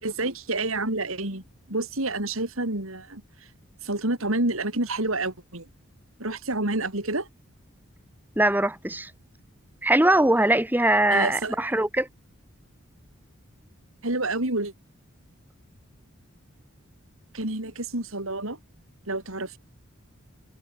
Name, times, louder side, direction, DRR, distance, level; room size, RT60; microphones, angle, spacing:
voice 1, 0.0-3.5 3.8-5.7 6.2-7.3 11.1-11.6 14.0-14.7 17.3-18.6 19.1-19.6, right 2 dB, 75° right, 4.6 m, -29 dB
voice 2, 8.4-9.1 9.8-12.1, right 1 dB, 10° right, 1.4 m, -21 dB
head